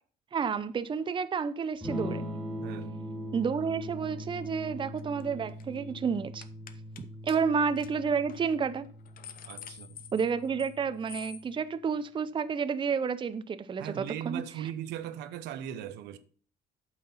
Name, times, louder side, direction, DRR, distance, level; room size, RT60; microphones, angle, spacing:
voice 1, 0.3-2.3 3.3-6.4 7.2-8.9 10.1-14.4, right 6 dB, 30° right, 0.6 m, -30 dB
Electric guitar / Strum, 1.8-11.6, equal, ahead, 2.4 m, -41 dB
voice 2, 2.6-3.0 9.5-10.0 13.8-16.2, right 10 dB, 85° right, 0.9 m, -39 dB
sound 1, 5.0-5.2 5.5-5.8 6.4-7.0 7.3-7.4 7.8-7.9 8.3-8.4 8.8-10.8 11.1-11.4, left 9 dB, 55° left, 0.9 m, -47 dB
8.6 x 5.9 x 5.6 m
cardioid pair, 110°, 17 cm